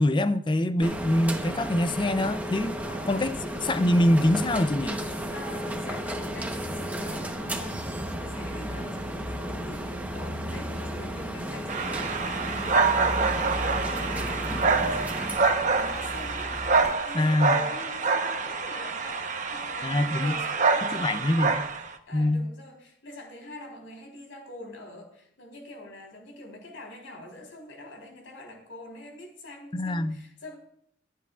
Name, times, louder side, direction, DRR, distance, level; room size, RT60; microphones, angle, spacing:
voice 1, 0.0-2.8 3.1-3.3 3.6-5.0 17.1-17.6 19.8-20.3 20.9-21.6 22.1-22.5 29.7-30.2, left 1 dB, 25° left, 0.5 m, -24 dB
sound 1, 0.8-16.9, equal, 10° right, 0.9 m, -33 dB
voice 2, 2.8-3.5 5.3-21.4 22.1-30.5, left 1 dB, 85° left, 3.8 m, -45 dB
sound 2, 11.7-21.9, right 4 dB, 40° right, 0.9 m, -26 dB
22.5 x 8.4 x 2.4 m
head